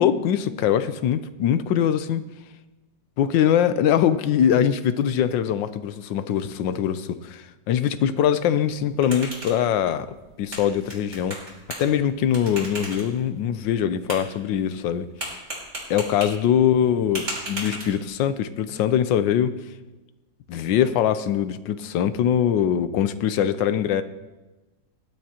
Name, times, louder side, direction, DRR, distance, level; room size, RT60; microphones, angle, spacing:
voice 1, 0.0-2.2 3.2-10.1 10.4-11.4 11.8-15.4 15.9-19.6 20.5-24.0, left 9 dB, 80° left, 12 dB, 1.3 m, -22 dB
sound 1, 8.7-18.3, right 1 dB, 35° right, 3.9 m, -38 dB
20.0 x 11.0 x 2.9 m, 1.1 s
omnidirectional pair, 2.0 m